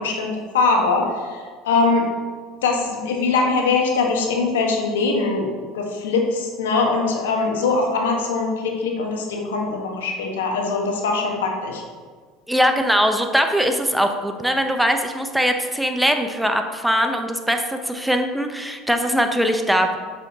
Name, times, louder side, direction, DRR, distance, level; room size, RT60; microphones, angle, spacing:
voice 1, 0.0-2.1 2.6-11.8, left 4 dB, 90° left, 1 dB, 1.3 m, -22 dB
voice 2, 12.5-20.0, equal, 5° right, 5 dB, 0.7 m, -21 dB
8.1 x 6.4 x 2.8 m, 1.5 s
hypercardioid pair, 85°, 0 cm